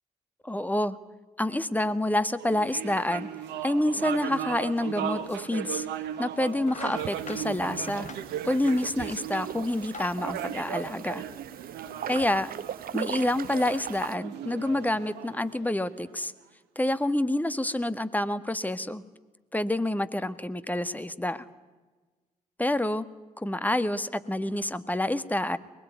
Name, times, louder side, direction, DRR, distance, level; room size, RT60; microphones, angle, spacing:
voice 1, 0.4-1.0 1.4-3.3 3.6-5.9 6.2-8.1 8.4-11.2 12.1-12.5 12.9-16.3 16.7-19.0 19.5-21.4 22.6-23.1 23.4-25.6, left 1 dB, 10° left, 12 dB, 1.7 m, -28 dB
sound 1, 2.4-16.1, right 10 dB, 65° right, 2.0 m, -37 dB
sound 2, 5.3-5.4 6.0-6.2 6.6-9.3 9.7-11.4, left 4 dB, 40° left, 1.9 m, -45 dB
sound 3, 7.0-14.2, right 9 dB, 50° right, 0.9 m, -40 dB
23.0 x 21.5 x 9.4 m, 1.2 s
figure-of-eight pair, 45°, 19 cm